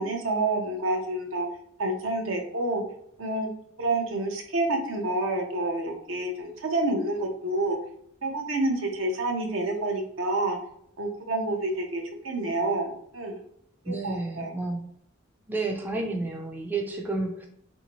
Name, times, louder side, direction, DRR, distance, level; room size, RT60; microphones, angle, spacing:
voice 1, 0.0-1.5 1.8-2.8 3.2-3.5 3.8-7.8 8.2-10.6 11.0-13.4 13.9-14.5, right 2 dB, 80° right, 3 dB, 0.7 m, -28 dB
voice 2, 13.9-14.8 15.5-17.5, right 2 dB, 10° right, 1 dB, 0.3 m, -31 dB
3.4 x 2.7 x 2.9 m, 0.70 s
head